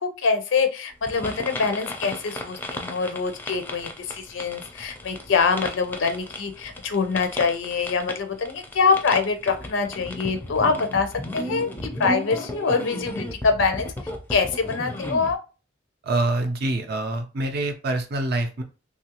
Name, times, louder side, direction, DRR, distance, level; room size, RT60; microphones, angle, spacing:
voice 1, 0.2-13.9 14.3-15.4, left 5 dB, 70° left, 8 dB, 0.5 m, -24 dB
sound 1, 1.1-15.3, left 1 dB, 10° left, 0.4 m, -35 dB
voice 2, 16.0-18.6, right 2 dB, 50° right, 5 dB, 0.5 m, -25 dB
3.0 x 2.3 x 2.9 m, 0.32 s
head